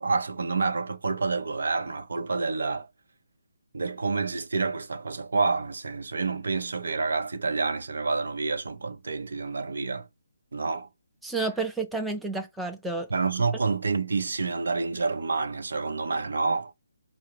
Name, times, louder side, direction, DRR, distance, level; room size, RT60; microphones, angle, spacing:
voice 1, 0.0-2.9 3.7-10.1 10.5-10.9 13.1-16.7, right 4 dB, 65° right, 0.7 m, -28 dB
voice 2, 11.2-13.1, right 3 dB, ahead, 0.4 m, -30 dB
4.7 x 2.0 x 4.3 m
figure-of-eight pair, 145°, 0 cm